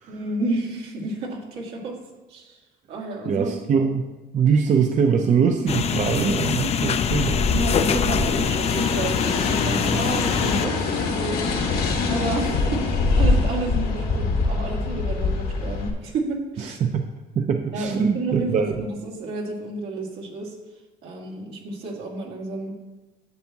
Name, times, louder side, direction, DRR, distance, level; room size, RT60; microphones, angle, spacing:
voice 1, 0.1-2.0 2.3-2.6 2.9-3.6 7.5-11.4 12.0-16.8 17.7-20.6 21.0-22.7, right 2 dB, 80° right, -1 dB, 2.1 m, -30 dB
voice 2, 3.2-4.0 4.3-7.4 16.8-17.1 17.4-18.9, right 6 dB, 45° right, 4 dB, 0.6 m, -22 dB
sound 1, 5.7-10.7, left 7 dB, 40° left, 0.5 m, -24 dB
sound 2, 7.0-15.9, left 3 dB, 70° left, 1.3 m, -24 dB
10.5 x 7.3 x 2.9 m, 1.2 s
cardioid pair, 110°, 17 cm